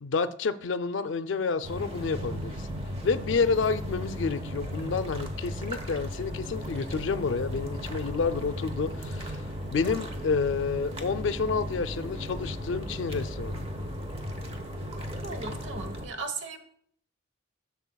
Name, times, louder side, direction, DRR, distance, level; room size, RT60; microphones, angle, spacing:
voice 1, 0.0-2.7 3.0-9.4 9.7-13.6, left 4 dB, 75° left, 0.4 m, -29 dB
sound 1, 1.6-16.1, equal, 30° right, 1.0 m, -36 dB
voice 2, 15.2-16.6, right 3 dB, 70° right, 1.1 m, -37 dB
11.0 x 6.9 x 2.3 m
head